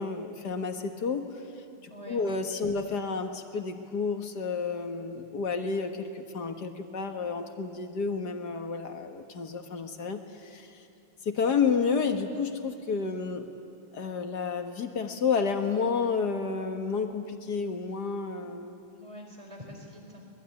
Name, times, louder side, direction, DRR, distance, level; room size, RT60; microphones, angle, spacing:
voice 1, 0.0-1.3 2.1-10.7 11.3-13.5 13.9-18.8, left 5 dB, 50° left, 6 dB, 1.9 m, -30 dB
voice 2, 1.9-2.3 2.6-2.8 19.0-20.3, equal, 15° right, 1 dB, 4.5 m, -45 dB
25.0 x 20.5 x 9.7 m, 2.5 s
omnidirectional pair, 2.4 m